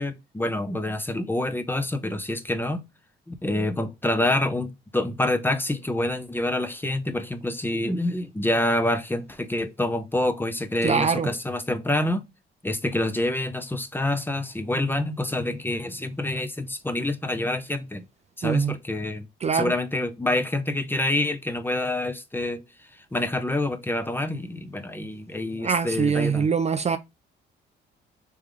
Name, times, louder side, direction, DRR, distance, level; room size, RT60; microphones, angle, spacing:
voice 1, 0.0-2.8 3.3-12.2 12.6-18.0 18.4-19.3 19.5-22.6 23.1-26.5, left 1 dB, 10° left, 0.6 m, -27 dB
voice 2, 10.8-11.3 18.4-18.7 19.4-19.7 25.6-27.0, right 6 dB, 35° right, 0.4 m, -23 dB
3.5 x 3.2 x 3.4 m
cardioid pair, 90°, 20 cm